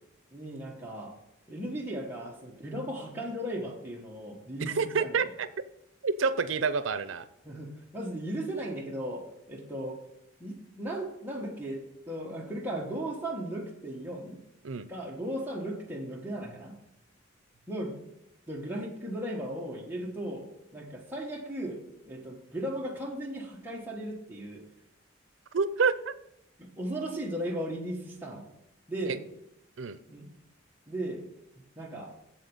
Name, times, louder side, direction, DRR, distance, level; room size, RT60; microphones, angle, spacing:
voice 1, 0.3-1.1 1.5-5.2 7.4-10.0 10.4-14.4 14.9-16.7 17.7-18.0 18.5-24.6 26.6-28.4 28.9-29.2 30.1-30.3 30.9-31.2 31.8-32.1, right 1 dB, 10° right, -2 dB, 1.4 m, -36 dB
voice 2, 4.6-5.5 6.0-7.3 14.6-14.9 25.5-26.1 29.1-29.2 29.8-30.0, right 5 dB, 85° right, 14 dB, 0.6 m, -28 dB
7.7 x 7.6 x 5.4 m, 0.82 s
head